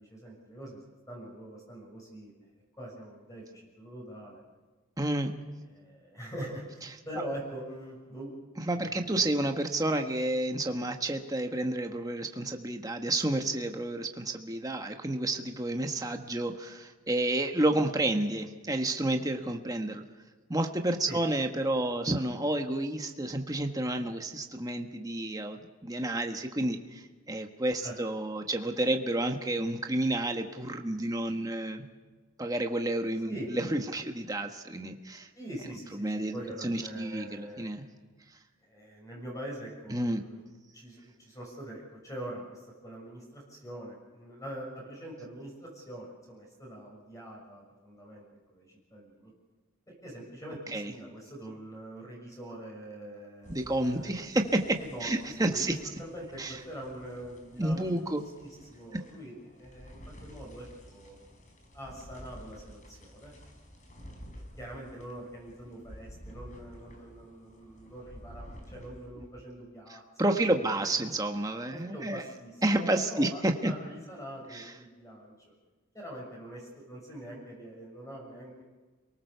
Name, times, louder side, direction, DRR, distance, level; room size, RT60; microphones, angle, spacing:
voice 1, 0.0-2.3 2.8-4.4 5.7-8.3 8.7-9.3 21.1-21.2 27.8-28.0 33.2-33.5 35.3-37.7 38.6-40.4 40.7-48.2 48.5-49.3 50.0-54.3 54.8-55.7 56.0-61.2 61.7-63.3 64.6-71.0 71.7-75.3 75.9-78.6, right 1 dB, 15° left, -2 dB, 6.6 m, -44 dB
voice 2, 5.0-5.3 8.7-20.0 20.5-31.8 32.4-35.3 36.0-37.8 39.9-40.2 50.7-50.9 53.5-55.7 56.4-56.6 57.6-58.2 70.2-72.2 72.6-73.7 74.5-74.7, right 1 dB, 15° right, 4 dB, 1.4 m, -30 dB
sound 1, 53.4-69.3, equal, 35° left, 4.9 m, -51 dB
28.5 x 19.0 x 6.9 m, 1.3 s
head